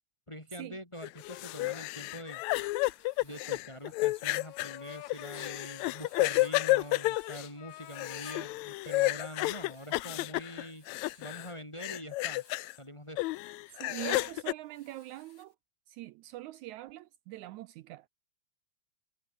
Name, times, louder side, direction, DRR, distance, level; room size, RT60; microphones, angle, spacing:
voice 1, 0.3-2.4 3.2-10.9 11.2-12.4 12.8-13.3, equal, 10° left, 2.8 m, -44 dB
sound 1, 1.0-11.5 11.8-12.7 13.2-14.5, left 19 dB, 80° left, 1.7 m, -31 dB
Writing, 2.7-7.4 7.7-8.4 8.7-10.2 10.7-11.6 12.1-12.8 13.5-15.5, left 4 dB, 50° left, 6.5 m, -58 dB
voice 2, 13.8-15.6 15.9-18.1, right 16 dB, 80° right, 1.9 m, -43 dB
omnidirectional pair, 3.6 m